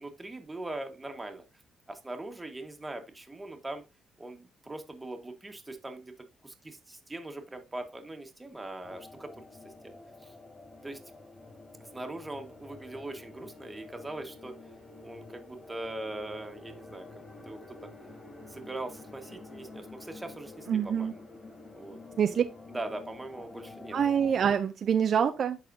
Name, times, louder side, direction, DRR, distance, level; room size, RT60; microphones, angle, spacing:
voice 1, 0.0-1.4 1.9-3.8 4.2-6.1 6.4-9.3 9.6-9.7 10.2-10.3 10.8-11.0 11.9-14.5 15.0-17.8 18.5-21.2 21.7-22.0 22.7-24.0, right 2 dB, 15° right, 5 dB, 1.5 m, -41 dB
sound 1, 8.8-24.3, left 3 dB, 30° left, 4.5 m, -49 dB
voice 2, 20.7-21.1 22.2-22.4 23.9-25.6, right 8 dB, 55° right, 8 dB, 0.5 m, -26 dB
11.5 x 4.2 x 2.7 m, 0.28 s
cardioid pair, 90°, 0 cm